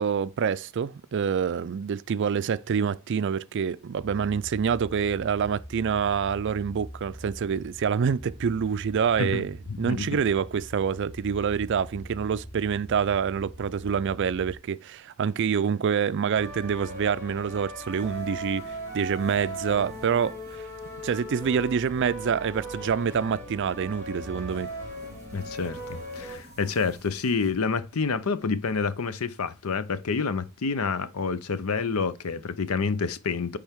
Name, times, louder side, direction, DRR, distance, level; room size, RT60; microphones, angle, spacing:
voice 1, 0.0-20.7 21.0-24.7, right 7 dB, 55° right, 0.4 m, -27 dB
sound 1, 4.0-14.6, equal, 35° left, 3.5 m, -44 dB
voice 2, 9.7-10.1 25.3-33.6, left 4 dB, 75° left, 0.6 m, -28 dB
sound 2, 16.3-26.4, right 1 dB, 10° left, 3.2 m, -38 dB
sound 3, 17.5-28.1, right 1 dB, 15° right, 2.1 m, -54 dB
10.0 x 3.5 x 3.6 m
head